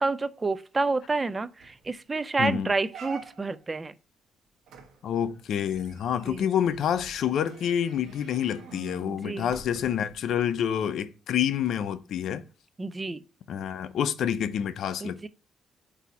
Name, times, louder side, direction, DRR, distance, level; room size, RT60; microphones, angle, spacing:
voice 1, 0.0-3.9 6.3-6.5 9.1-9.5 12.8-13.2 15.0-15.3, right 3 dB, 25° right, 0.4 m, -29 dB
sound 1, 1.2-1.3 1.6-1.9 2.3-2.4 2.9-3.7 4.7-10.2 10.8-10.9, right 5 dB, 80° right, 1.1 m, -47 dB
voice 2, 2.4-2.7 5.0-12.4 13.5-15.3, left 9 dB, 70° left, 0.5 m, -28 dB
8.2 x 2.7 x 4.2 m
cardioid pair, 90°, 0 cm